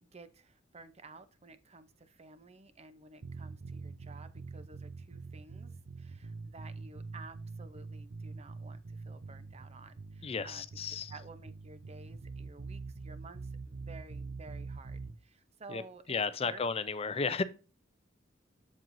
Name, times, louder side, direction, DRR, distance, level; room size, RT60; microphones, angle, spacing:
voice 1, 0.0-10.7 11.1-16.0 16.4-16.6, right 3 dB, 35° right, 0.7 m, -53 dB
sound 1, 3.2-15.2, right 3 dB, 85° right, 0.7 m, -44 dB
voice 2, 10.2-11.1 15.7-15.8 16.1-17.4, left 5 dB, 30° left, 0.4 m, -33 dB
7.6 x 7.3 x 2.6 m
head